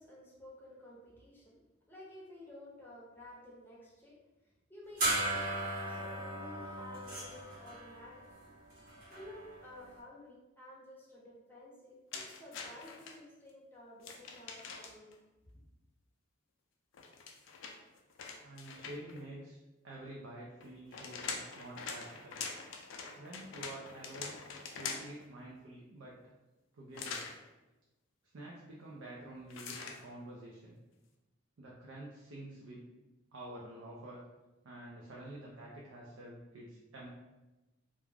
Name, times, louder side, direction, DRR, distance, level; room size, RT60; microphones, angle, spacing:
voice 1, 0.0-1.6 1.9-4.2 4.7-5.5 5.8-8.5 9.1-15.1, left 1 dB, 10° left, -5 dB, 0.6 m, -53 dB
sound 1, 5.0-9.8, right 2 dB, 45° right, 0.8 m, -37 dB
sound 2, 12.1-13.1 14.0-15.1 16.9-19.2 20.6-25.2 26.9-27.4 29.5-30.0, left 5 dB, 70° left, 0.4 m, -44 dB
voice 2, 18.4-19.6 19.8-22.4 23.2-24.4 24.8-26.2 26.7-27.2 28.3-30.8 31.6-32.8 33.3-34.2 34.6-37.1, right 1 dB, 75° right, -3 dB, 0.4 m, -48 dB
2.4 x 2.1 x 3.3 m, 1.1 s
head